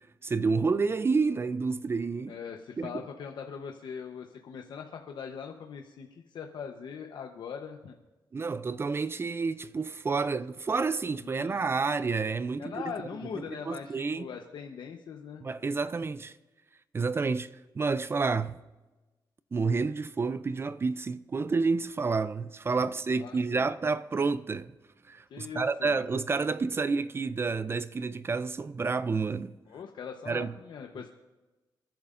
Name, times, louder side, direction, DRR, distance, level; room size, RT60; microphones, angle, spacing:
voice 1, 0.2-2.3 2.8-3.0 8.3-12.9 13.7-14.3 15.4-16.3 16.9-17.5 17.7-18.6 19.5-24.7 25.1-29.6 30.3-30.5, right 4 dB, 30° right, 0.4 m, -29 dB
voice 2, 2.3-8.0 11.2-11.6 12.6-15.4 23.1-23.6 25.3-26.0 29.7-31.1, left 7 dB, 70° left, 0.9 m, -41 dB
28.5 x 10.5 x 2.5 m
cardioid pair, 105°, 8 cm